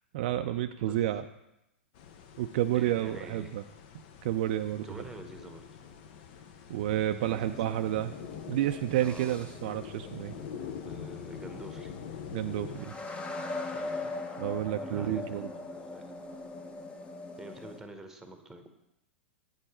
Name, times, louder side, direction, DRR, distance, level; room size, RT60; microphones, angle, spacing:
voice 1, 0.1-1.2 2.4-3.6 4.2-5.0 6.7-8.1 8.5-10.3 12.3-12.9 14.4-15.5, right 12 dB, 55° right, 8 dB, 0.4 m, -30 dB
sound 1, 1.9-12.8, left 7 dB, 50° left, 0.9 m, -45 dB
voice 2, 2.7-3.5 4.7-5.7 7.2-7.9 8.9-9.6 10.9-11.9 13.7-14.3 14.8-16.1 17.4-18.6, right 1 dB, 5° right, 6 dB, 1.1 m, -47 dB
sound 2, 7.2-17.8, left 2 dB, 15° left, 0.9 m, -42 dB
8.7 x 6.3 x 4.3 m, 0.89 s
hypercardioid pair, 105°, 6 cm